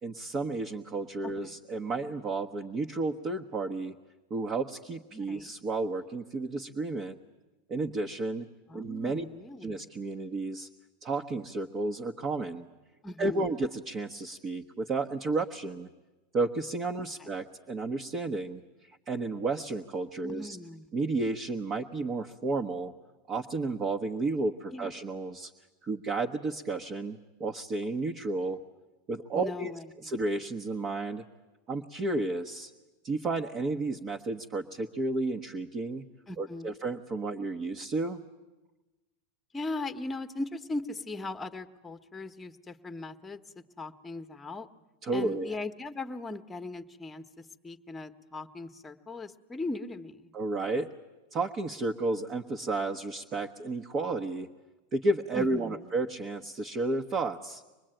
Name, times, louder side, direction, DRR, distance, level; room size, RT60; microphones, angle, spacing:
voice 1, 0.0-3.9 4.3-7.2 7.7-8.5 8.7-9.2 9.6-10.7 11.0-12.7 13.2-15.9 16.3-20.6 20.9-22.9 23.3-25.5 25.8-28.6 29.1-29.7 30.0-31.2 31.7-32.7 33.0-36.0 36.4-38.2 45.0-45.5 50.3-50.9 51.3-54.5 54.9-57.6, right 3 dB, 35° right, 3 dB, 1.1 m, -32 dB
voice 2, 1.2-1.6 5.1-5.5 8.7-9.9 13.0-13.6 17.2-17.3 20.2-20.9 24.7-24.9 29.3-30.1 36.3-36.7 39.5-44.7 45.1-50.3 55.3-55.9, left 2 dB, 10° left, 8 dB, 1.1 m, -39 dB
25.0 x 20.0 x 9.0 m, 1.1 s
hypercardioid pair, 115°, 0 cm